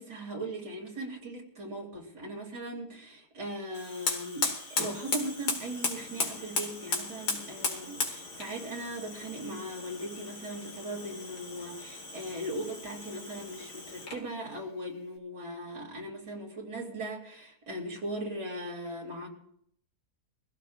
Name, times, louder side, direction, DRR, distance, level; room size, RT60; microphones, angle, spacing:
voice 1, 0.0-19.3, right 1 dB, 90° right, -1 dB, 3.5 m, -39 dB
Fire, 3.7-14.3, left 3 dB, 85° left, 2.5 m, -36 dB
24.0 x 15.5 x 2.5 m, 0.68 s
omnidirectional pair, 1.7 m